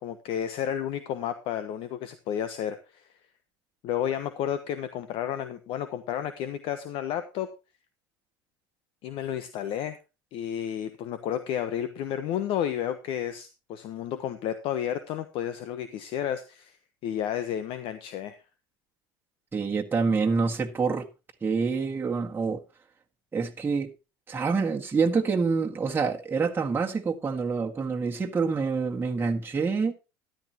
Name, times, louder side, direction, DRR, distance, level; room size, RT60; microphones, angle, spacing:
voice 1, 0.0-3.1 3.8-7.5 9.0-10.0 10.3-16.8 17.0-18.4, left 10 dB, 55° left, 1.1 m, -31 dB
voice 2, 19.5-21.1 21.4-22.6 23.3-23.9 24.3-29.9, right 4 dB, 20° right, 1.7 m, -26 dB
13.5 x 12.0 x 2.9 m
hypercardioid pair, 80°, 11 cm